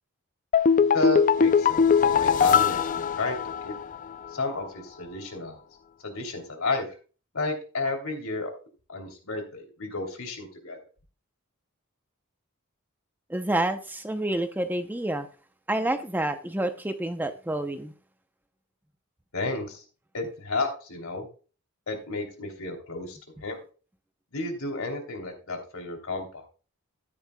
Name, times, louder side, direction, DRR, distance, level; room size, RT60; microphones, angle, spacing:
sound 1, 0.5-4.0 4.2-4.3, left 6 dB, 35° left, 0.4 m, -21 dB
voice 1, 0.8-1.9 2.2-3.7 4.3-5.6 6.0-6.9 7.3-8.5 8.9-10.8 19.3-19.8 20.1-21.3 21.9-23.6 24.3-26.3, left 2 dB, 75° left, 3.1 m, -32 dB
voice 2, 13.3-15.3 15.7-17.9, right 1 dB, 10° right, 0.6 m, -28 dB
13.0 x 10.0 x 2.2 m
head